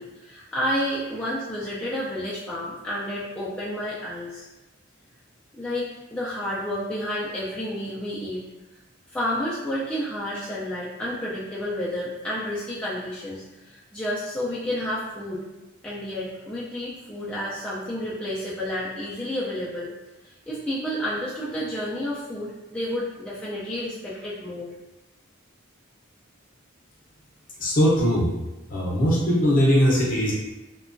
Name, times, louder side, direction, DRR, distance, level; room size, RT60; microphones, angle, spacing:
voice 1, 0.0-4.4 5.6-8.4 9.1-15.4 15.8-19.9 20.2-24.7, equal, 5° left, -9 dB, 0.3 m, -30 dB
voice 2, 27.6-28.3 28.7-30.3, equal, 40° left, -4 dB, 0.6 m, -20 dB
2.8 x 2.2 x 2.5 m, 1.0 s
head